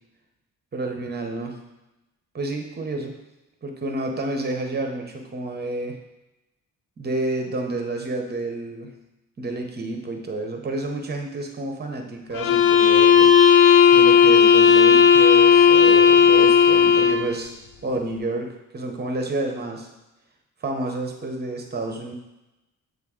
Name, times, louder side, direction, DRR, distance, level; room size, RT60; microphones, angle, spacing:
voice 1, 0.7-1.6 2.3-3.2 3.6-6.0 7.0-8.9 9.4-13.3 13.9-17.6 17.8-19.9 20.6-22.1, right 2 dB, 30° right, 3 dB, 0.9 m, -29 dB
sound 1, 12.3-17.3, left 7 dB, 80° left, 0.6 m, -14 dB
7.8 x 3.6 x 3.7 m, 0.97 s
cardioid pair, 135°, 32 cm